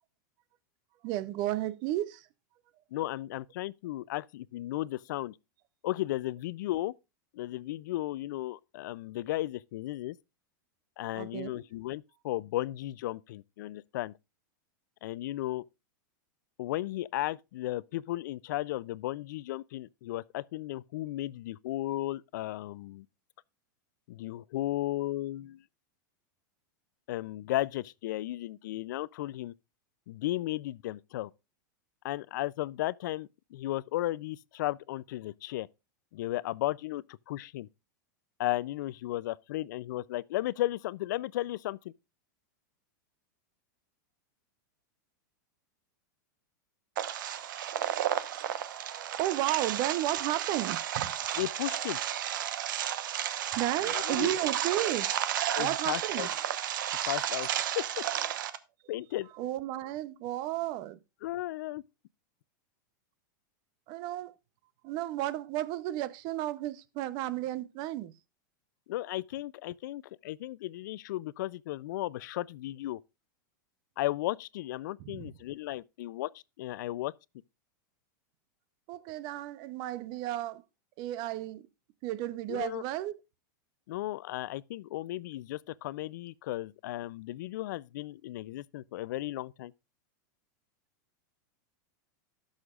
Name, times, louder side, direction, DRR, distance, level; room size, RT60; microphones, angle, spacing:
voice 1, 1.0-2.3 11.1-11.6 48.9-51.1 53.5-55.1 55.6-56.3 58.5-58.6 59.3-61.0 63.9-64.3 64.8-68.1 75.0-75.3 78.9-80.6 81.0-81.7 82.0-83.2, right 14 dB, 40° right, 0.6 m, -33 dB
voice 2, 2.9-5.4 5.8-6.9 7.3-10.2 11.0-14.1 15.0-15.6 16.6-23.1 24.1-25.6 27.1-29.5 30.1-31.3 32.0-35.7 36.1-37.7 38.4-41.9 51.3-52.0 53.9-54.3 55.5-56.3 57.1-58.0 58.9-59.3 61.2-61.8 68.9-73.0 74.0-77.1 82.5-82.8 83.9-89.7, left 15 dB, 70° left, 0.4 m, -35 dB
sound 1, 47.0-58.6, right 11 dB, 75° right, 0.9 m, -32 dB
17.5 x 6.4 x 2.4 m
supercardioid pair, 150°, 11 cm